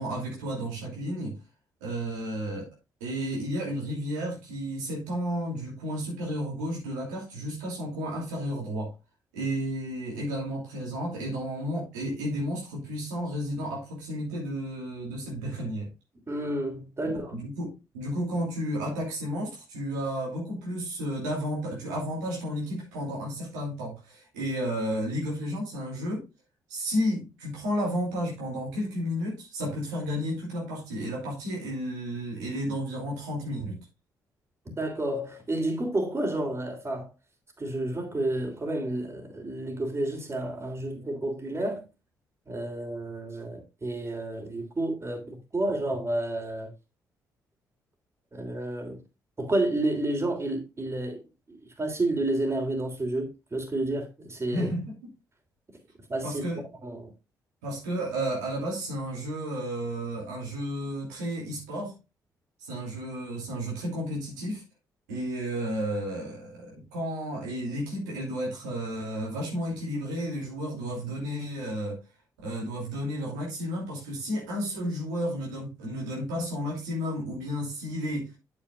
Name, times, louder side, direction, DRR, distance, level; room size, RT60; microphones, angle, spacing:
voice 1, 0.0-1.4 1.8-2.7 3.0-8.9 9.3-15.9 17.0-26.3 26.7-33.9 54.5-55.0 56.2-56.7 57.6-62.0 62.6-64.6 65.1-72.0 72.4-78.3, equal, 90° right, 2.8 m, -32 dB
voice 2, 16.3-17.3 34.8-37.1 37.6-41.8 42.5-46.7 48.3-49.0 49.4-54.7 56.1-56.4 56.8-57.1, right 2 dB, 30° right, 3.1 m, -30 dB
8.6 x 8.3 x 2.4 m
hypercardioid pair, 45°, 9 cm